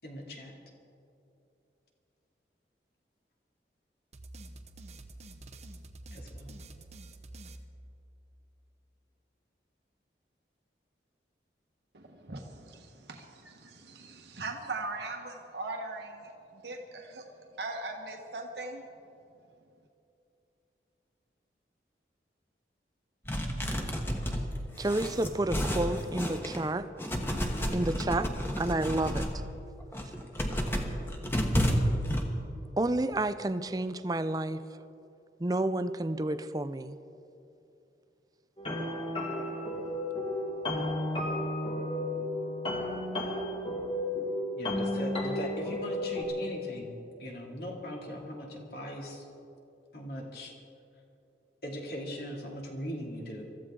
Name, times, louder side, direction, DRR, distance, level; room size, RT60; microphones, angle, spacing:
voice 1, 0.0-0.5 6.1-6.6 44.6-49.3 49.9-50.5 51.6-53.4, equal, 60° left, 0 dB, 2.6 m, -39 dB
sound 1, 4.1-8.4, right 1 dB, 40° right, 0.8 m, -48 dB
voice 2, 11.9-17.2 17.6-18.9, right 2 dB, 70° right, 1 dB, 1.3 m, -40 dB
sound 2, 23.3-26.7 27.0-29.4 29.8-32.2, equal, 15° left, 1.3 m, -31 dB
voice 3, 24.8-26.9 27.7-29.4 32.8-34.6 35.4-37.0, right 2 dB, 20° right, 12 dB, 0.5 m, -30 dB
sound 3, 38.6-46.2, left 1 dB, 30° left, 2.0 m, -33 dB
24.0 x 14.0 x 3.8 m, 2.7 s
head